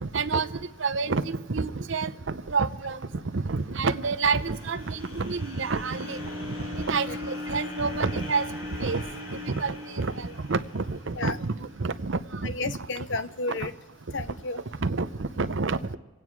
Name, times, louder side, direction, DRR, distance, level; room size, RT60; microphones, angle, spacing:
voice 1, 0.0-3.0 3.3-6.2 6.7-8.5 8.8-9.0 9.3-11.5 11.8-12.8 13.5-13.6 14.8-16.0, right 4 dB, 60° right, 12 dB, 0.7 m, -28 dB
sound 1, 3.5-11.7, left 2 dB, 80° left, 6.5 m, -39 dB
voice 2, 12.4-13.7 14.1-14.6, left 3 dB, 55° left, 12 dB, 0.8 m, -32 dB
27.5 x 9.3 x 4.7 m, 1.2 s
head